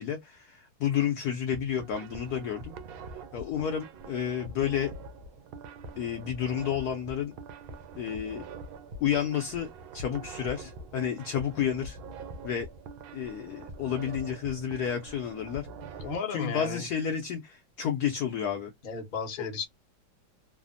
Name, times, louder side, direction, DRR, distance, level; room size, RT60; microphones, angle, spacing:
voice 1, 0.0-2.7 3.3-4.9 6.0-7.3 8.0-8.5 9.0-12.0 12.4-12.7 13.1-15.7 16.3-18.7, left 9 dB, 70° left, 0.9 m, -31 dB
sound 1, 1.4-16.2, right 3 dB, 85° right, 1.4 m, -44 dB
voice 2, 15.8-16.9 18.8-19.7, left 4 dB, 40° left, 0.7 m, -34 dB
3.3 x 2.0 x 2.4 m
omnidirectional pair, 2.1 m